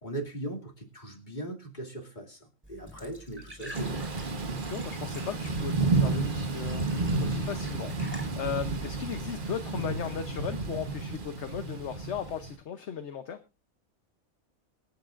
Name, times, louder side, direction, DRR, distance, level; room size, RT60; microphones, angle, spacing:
voice 1, 0.0-4.0, right 1 dB, 30° left, 0 dB, 2.6 m, -39 dB
Glass / Trickle dribble / Fill (with liquid), 2.6-9.4, equal, 5° right, 4.5 m, -48 dB
Thunder / Rain, 3.7-12.5, right 3 dB, 40° right, 1.3 m, -31 dB
voice 2, 4.7-13.4, left 8 dB, 55° left, 9 dB, 1.1 m, -37 dB
26.5 x 8.9 x 2.5 m, 0.28 s
omnidirectional pair, 1.5 m